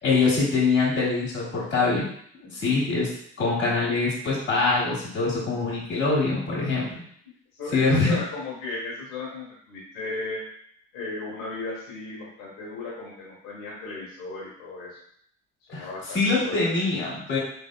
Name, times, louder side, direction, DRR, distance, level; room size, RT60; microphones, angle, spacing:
voice 1, 0.0-2.1 2.5-3.1 3.4-6.9 7.7-8.2 15.7-15.9 16.1-17.4, left 3 dB, 90° left, -9 dB, 1.3 m, -23 dB
voice 2, 7.5-10.4 10.9-15.0 15.7-16.8, left 3 dB, 65° left, -5 dB, 1.2 m, -36 dB
3.5 x 3.3 x 2.2 m, 0.66 s
hypercardioid pair, 50°, 37 cm